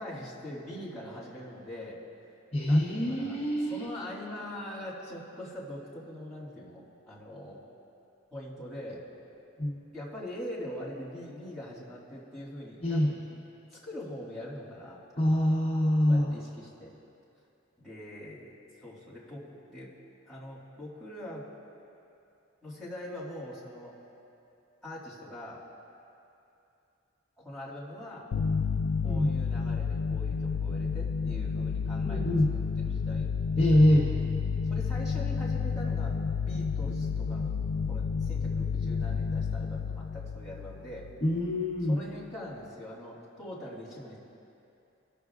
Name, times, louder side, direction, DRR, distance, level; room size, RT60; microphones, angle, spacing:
voice 1, 0.0-2.0 2.6-7.6 8.3-9.0 9.9-13.2 13.7-15.6 16.1-16.9 17.8-18.5 18.8-19.9 20.3-21.4 22.6-23.9 24.8-25.6 27.4-28.3 29.0-32.2 32.5-34.0 34.6-36.2 36.4-37.5 37.9-41.1 41.8-44.2, left 1 dB, ahead, -9 dB, 2.1 m, -43 dB
voice 2, 2.5-3.9 9.6-9.8 12.8-13.1 15.2-16.3 29.0-29.3 32.0-32.5 33.6-34.1 41.2-42.0, left 1 dB, 35° left, -6 dB, 0.9 m, -24 dB
sound 1, 28.3-41.5, left 5 dB, 75° left, 0.3 m, -30 dB
17.0 x 6.6 x 2.4 m, 2.7 s
head